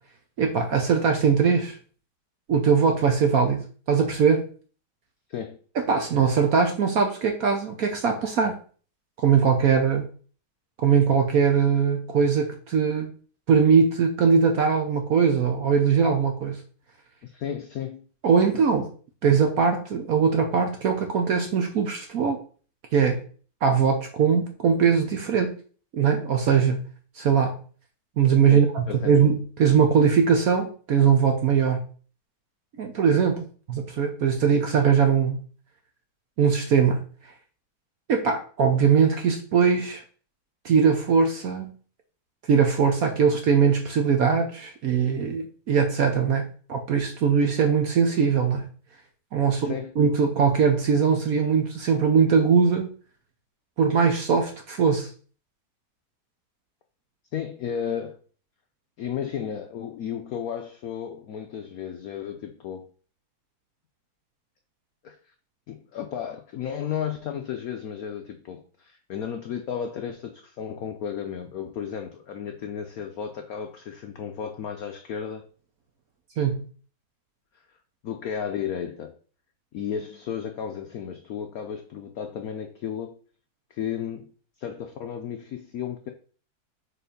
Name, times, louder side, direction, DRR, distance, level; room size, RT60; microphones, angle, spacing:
voice 1, 0.4-1.8 2.5-4.5 5.8-8.6 9.2-10.0 10.8-13.1 13.5-16.6 18.2-18.9 19.2-22.4 22.9-23.2 23.6-25.6 25.9-26.8 27.2-27.6 28.2-31.8 32.8-33.4 33.7-35.4 36.4-37.0 38.1-40.0 40.6-41.7 42.5-48.6 49.3-52.9 53.8-55.1 76.4-76.6, right 6 dB, 60° right, 4 dB, 1.0 m, -21 dB
voice 2, 5.3-5.6 17.2-18.0 28.5-29.2 49.5-49.9 57.3-58.2 59.0-62.9 65.0-65.2 65.7-75.4 78.0-79.1 79.7-83.2 83.7-84.3 84.6-86.1, left 8 dB, 75° left, 6 dB, 0.8 m, -33 dB
4.6 x 4.3 x 5.1 m, 0.41 s
omnidirectional pair, 2.2 m